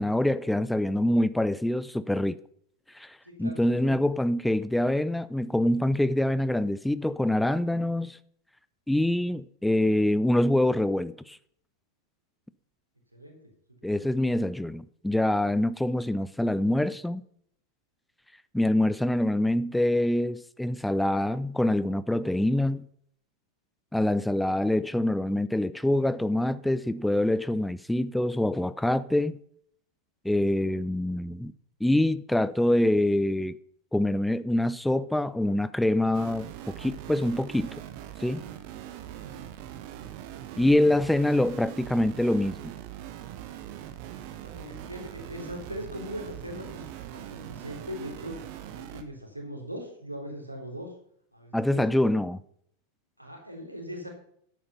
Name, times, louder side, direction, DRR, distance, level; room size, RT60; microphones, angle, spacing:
voice 1, 0.0-2.4 2.9-8.2 8.9-11.4 13.8-17.2 18.5-22.9 23.9-29.4 30.2-31.5 31.8-33.6 33.9-37.7 38.2-38.4 40.6-42.6 51.5-52.4, left 1 dB, 5° left, 0.4 m, -25 dB
voice 2, 3.2-3.9 13.1-13.5 13.8-14.1 24.3-24.4 39.2-39.5 44.4-50.9 51.3-51.9 53.2-54.1, equal, 90° right, 3.4 m, -40 dB
sound 1, 36.1-49.0, right 11 dB, 45° right, 1.5 m, -41 dB
11.5 x 8.8 x 5.5 m
figure-of-eight pair, 90°, 0 cm